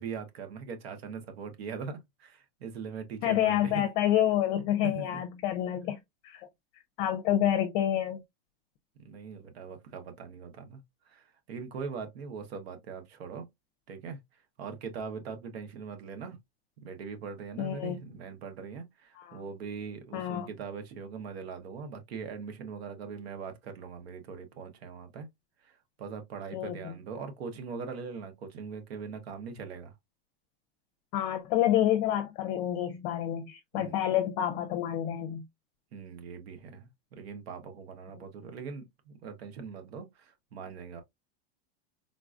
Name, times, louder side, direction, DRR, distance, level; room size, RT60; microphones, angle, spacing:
voice 1, 0.0-3.8 4.8-5.2 9.0-10.8 11.1-13.5 13.9-14.2 14.6-16.4 16.8-25.3 25.6-29.9 33.7-34.0 35.9-36.9 37.2-41.0, right 5 dB, 80° right, 1.0 m, -41 dB
voice 2, 3.2-6.0 6.2-6.5 7.0-8.2 17.6-18.0 19.1-19.4 20.1-20.5 26.5-26.9 31.1-35.4, left 11 dB, 45° left, 0.6 m, -28 dB
3.8 x 2.4 x 2.4 m
supercardioid pair, 130°, 31 cm